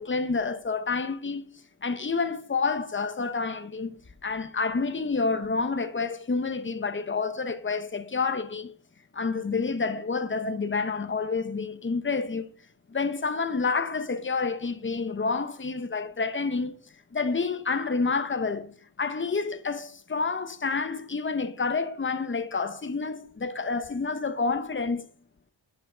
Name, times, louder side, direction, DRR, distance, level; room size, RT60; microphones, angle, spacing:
voice 1, 0.0-8.7 9.1-12.5 12.9-16.8 17.1-25.1, left 4 dB, 25° left, 0.8 m, -29 dB
10.5 x 5.8 x 4.9 m
wide cardioid pair, 135°, 44 cm